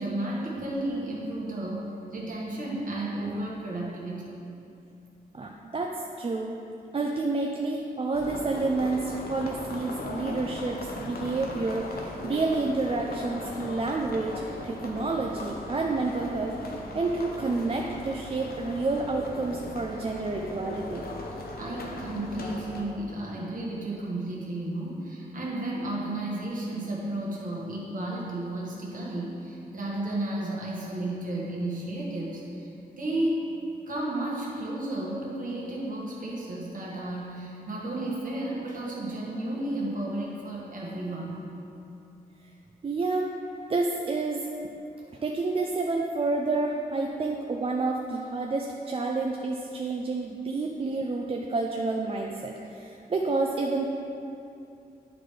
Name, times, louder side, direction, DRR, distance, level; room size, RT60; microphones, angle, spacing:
voice 1, 0.0-4.4 21.6-33.5 33.9-41.4, right 1 dB, 55° right, -4 dB, 1.5 m, -33 dB
voice 2, 5.3-6.6 6.9-21.1 42.8-43.3 43.7-44.5 45.2-53.9, right 3 dB, 35° right, 0 dB, 0.4 m, -29 dB
sound 1, 8.1-22.8, left 2 dB, 70° left, 0.7 m, -38 dB
10.5 x 3.9 x 3.3 m, 2.7 s
wide cardioid pair, 100°, 16 cm